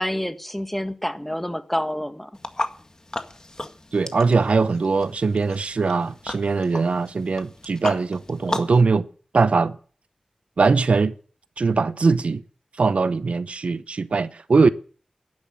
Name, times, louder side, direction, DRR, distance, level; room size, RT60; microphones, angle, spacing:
voice 1, 0.0-2.3, equal, 5° left, 1.6 m, -28 dB
sound 1, 2.3-8.8, left 2 dB, 35° left, 1.8 m, -34 dB
voice 2, 3.9-9.1 9.3-9.8 10.6-11.1 11.6-12.4 12.8-14.7, right 4 dB, 80° right, 0.8 m, -21 dB
11.5 x 10.5 x 8.8 m
wide cardioid pair, 65°, 2 cm